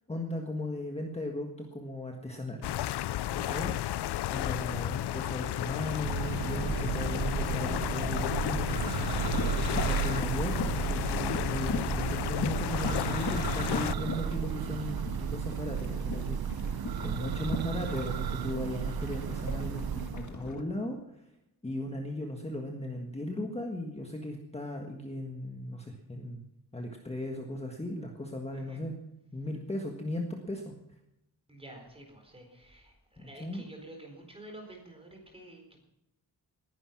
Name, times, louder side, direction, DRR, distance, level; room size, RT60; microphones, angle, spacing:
voice 1, 0.1-2.7 3.3-3.7 4.3-10.6 10.9-19.8 20.1-21.2 21.6-26.4 26.7-28.9 29.3-30.7 33.2-33.6, left 1 dB, 15° left, 2 dB, 1.6 m, -37 dB
sound 1, 2.6-14.0, left 13 dB, 90° left, 0.5 m, -33 dB
Church bell, 6.0-20.3, right 9 dB, 65° right, 0.7 m, -34 dB
sound 2, 9.3-20.6, left 4 dB, 45° left, 1.8 m, -39 dB
voice 2, 28.5-28.9 31.5-35.8, right 1 dB, 15° right, 2 dB, 4.3 m, -49 dB
19.5 x 11.0 x 6.0 m, 0.89 s
wide cardioid pair, 145°, 39 cm